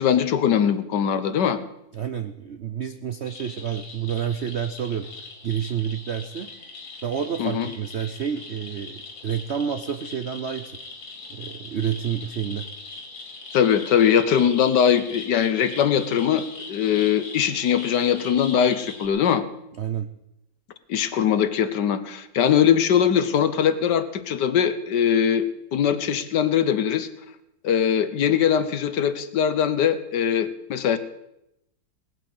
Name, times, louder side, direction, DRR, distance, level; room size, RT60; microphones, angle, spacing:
voice 1, 0.0-1.6 7.4-7.7 13.5-19.4 20.9-25.5 25.7-27.1 27.6-31.0, left 8 dB, 65° left, 12 dB, 1.5 m, -21 dB
voice 2, 1.9-6.5 7.0-10.8 11.3-12.7 19.8-20.1, right 8 dB, 65° right, 9 dB, 0.6 m, -29 dB
sound 1, 3.3-19.1, left 3 dB, 85° left, 3.4 m, -40 dB
18.5 x 9.4 x 7.8 m, 0.83 s
omnidirectional pair, 2.1 m